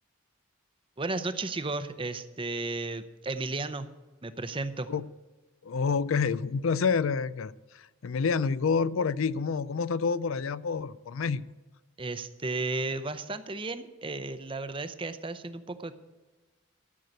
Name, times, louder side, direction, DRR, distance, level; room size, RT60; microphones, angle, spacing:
voice 1, 1.0-3.9 4.2-4.9 12.0-15.9, right 3 dB, 25° right, 11 dB, 0.7 m, -34 dB
voice 2, 5.6-11.5, left 5 dB, 70° left, 17 dB, 0.4 m, -28 dB
13.5 x 6.5 x 9.2 m, 1.2 s
head